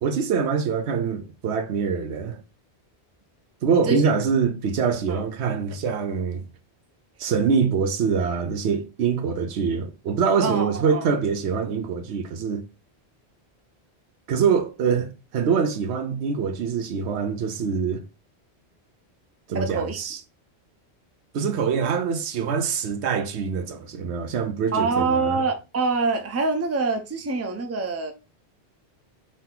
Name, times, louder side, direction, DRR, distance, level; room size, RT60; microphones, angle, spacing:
voice 1, 0.0-2.4 3.6-6.4 7.2-12.6 14.3-18.0 19.5-20.2 21.3-25.4, right 6 dB, 85° right, 0.9 m, -24 dB
voice 2, 3.7-4.0 5.1-5.3 10.4-11.1 19.5-20.0 24.7-28.1, right 3 dB, 20° right, 0.5 m, -25 dB
3.8 x 2.7 x 3.7 m
omnidirectional pair, 1.1 m